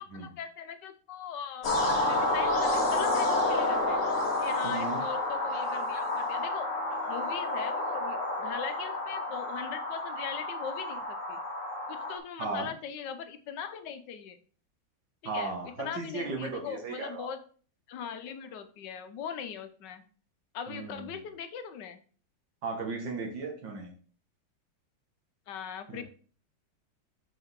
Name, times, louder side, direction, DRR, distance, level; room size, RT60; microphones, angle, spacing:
voice 1, 0.0-4.0 4.4-6.7 7.1-11.4 11.9-14.4 15.2-15.5 15.8-17.4 17.9-20.0 20.5-22.0 25.5-26.0, left 7 dB, 70° left, 9 dB, 1.3 m, -40 dB
sound 1, 1.6-12.2, left 2 dB, 45° left, 1.4 m, -30 dB
voice 2, 4.6-5.0 12.4-12.7 15.2-17.3 20.7-21.1 22.6-23.9 25.9-26.0, right 3 dB, 70° right, 1 dB, 1.9 m, -36 dB
5.4 x 4.6 x 4.7 m, 0.42 s
omnidirectional pair, 2.1 m